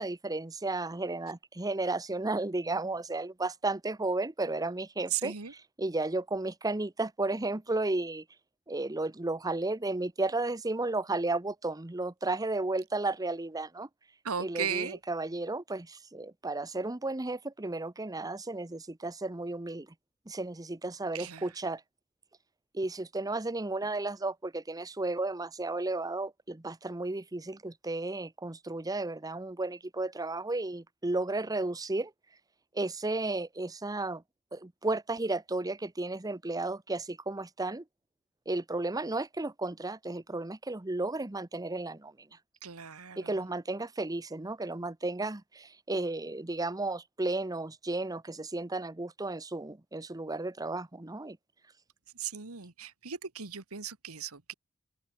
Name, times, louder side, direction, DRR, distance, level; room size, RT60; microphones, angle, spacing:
voice 1, 0.0-5.3 5.8-8.2 8.7-13.9 14.4-19.9 20.3-21.8 22.7-32.1 32.7-34.2 34.5-37.8 38.5-42.3 43.2-51.4, right 2 dB, 15° right, 0.8 m, -33 dB
voice 2, 5.1-5.5 14.2-15.0 21.1-21.5 42.6-43.5 52.1-54.5, right 8 dB, 80° right, 1.8 m, -37 dB
open air
head